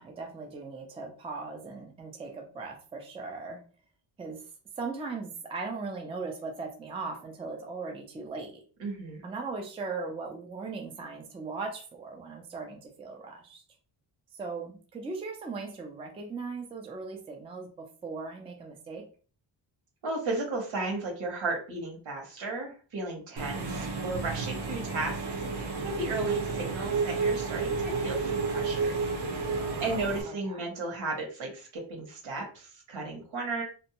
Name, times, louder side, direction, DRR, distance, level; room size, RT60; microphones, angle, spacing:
voice 1, 0.0-3.6 4.2-4.4 4.8-8.6 9.2-13.6 14.3-19.1 23.5-24.1 29.7-30.6, right 4 dB, 15° right, 1 dB, 0.3 m, -39 dB
voice 2, 8.8-9.2 20.0-25.2 25.5-29.0 29.8-33.6, right 2 dB, 80° right, 0 dB, 1.3 m, -34 dB
Engine / Mechanisms, 23.4-30.2, right 4 dB, 60° right, 0.7 m, -31 dB
2.6 x 2.1 x 2.8 m, 0.37 s
wide cardioid pair, 165°, 46 cm